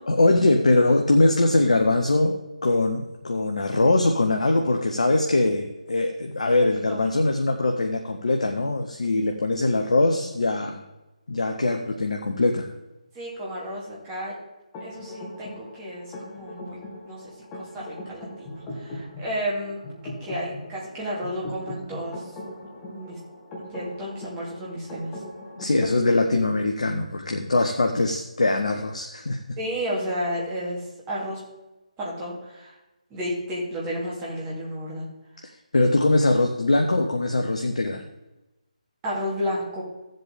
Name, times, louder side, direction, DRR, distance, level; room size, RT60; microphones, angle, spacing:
voice 1, 0.1-2.4 2.6-10.8 11.3-12.7 25.6-29.6 35.7-38.0, left 2 dB, 60° left, 4 dB, 0.9 m, -22 dB
voice 2, 13.1-14.3 14.8-16.8 17.0-19.8 20.2-22.2 22.9-23.2 23.6-25.2 29.6-31.4 32.0-32.7 33.1-35.1 39.0-39.8, equal, 15° right, -6 dB, 3.0 m, -32 dB
sound 1, 14.7-25.8, left 1 dB, 15° left, 2.0 m, -39 dB
15.0 x 7.7 x 3.6 m, 1.0 s
figure-of-eight pair, 150°, 4 cm